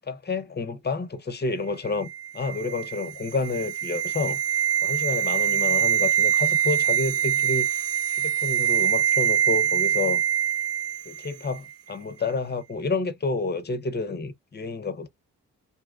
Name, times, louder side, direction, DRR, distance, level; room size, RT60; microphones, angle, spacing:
voice 1, 0.1-7.7 8.2-10.2 11.1-15.1, left 3 dB, 30° left, 0.8 m, -29 dB
sound 1, 2.0-11.3 11.6-11.7, right 9 dB, 45° right, 0.4 m, -24 dB
2.7 x 2.2 x 2.4 m
supercardioid pair, 50°, 35 cm